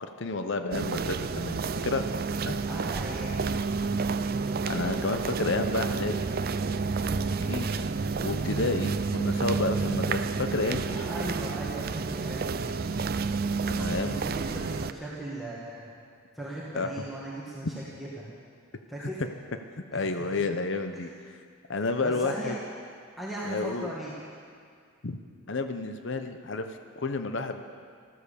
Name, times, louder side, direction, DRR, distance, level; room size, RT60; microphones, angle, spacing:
voice 1, 0.2-2.1 2.4-2.6 4.7-6.3 7.1-7.9 8.2-11.1 13.7-14.2 16.7-17.0 17.6-17.7 19.0-19.1 19.9-21.1 21.7-22.6 23.4-23.9 25.0-25.2 25.5-27.6, left 3 dB, 55° left, 7 dB, 0.8 m, -31 dB
sound 1, 0.7-14.9, right 4 dB, 45° right, 0.4 m, -30 dB
voice 2, 2.7-3.4 10.9-12.9 13.6-16.0 16.4-18.2 18.9-19.2 19.9-20.3 21.8-22.6 23.2-24.1, right 1 dB, ahead, -7 dB, 1.8 m, -38 dB
14.5 x 14.0 x 6.9 m, 2.2 s
head